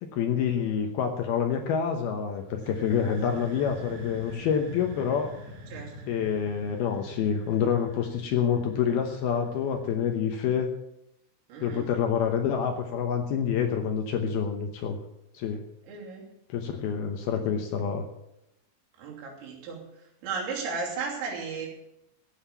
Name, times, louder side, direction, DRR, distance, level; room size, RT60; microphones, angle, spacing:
voice 1, 0.0-5.4 6.1-10.7 11.6-15.0 15.3-15.6 16.5-18.1, left 7 dB, 80° left, 4 dB, 2.3 m, -27 dB
sound 1, 2.4-10.1, equal, 50° right, 2.4 m, -44 dB
voice 2, 11.5-11.9 15.9-16.3 19.0-19.8 20.2-21.7, right 4 dB, 75° right, -1 dB, 5.5 m, -34 dB
15.0 x 8.9 x 7.0 m, 0.83 s
omnidirectional pair, 5.8 m